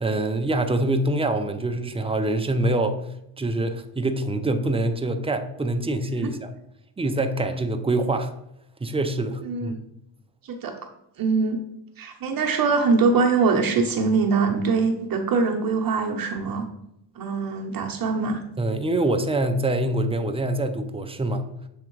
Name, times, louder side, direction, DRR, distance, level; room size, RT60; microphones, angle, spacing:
voice 1, 0.0-3.0 3.4-6.5 7.0-8.3 8.8-9.8 18.6-21.5, right 2 dB, 10° right, 6 dB, 0.4 m, -25 dB
voice 2, 9.4-9.8 10.4-10.7 11.2-11.6 12.0-16.7 17.2-18.4, right 4 dB, 45° right, 2 dB, 0.9 m, -23 dB
7.2 x 3.7 x 4.6 m, 0.81 s
cardioid pair, 130°, 48 cm